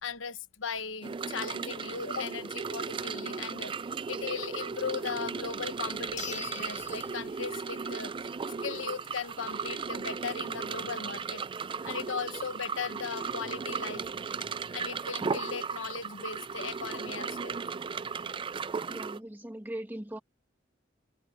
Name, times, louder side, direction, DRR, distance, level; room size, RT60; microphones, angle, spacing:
voice 1, 0.0-3.7 4.1-8.1 8.6-11.4 11.8-14.1 14.7-17.6, left 6 dB, 85° left, 1.3 m, -38 dB
sound 1, 1.0-19.2, right 5 dB, 25° right, 0.3 m, -36 dB
sound 2, 5.3-5.4 6.2-7.9 8.3-8.4 13.0-13.1 13.3-13.4 14.0-14.4, left 8 dB, 40° left, 4.2 m, -44 dB
voice 2, 18.9-20.2, right 1 dB, 10° right, 1.5 m, -39 dB
open air
head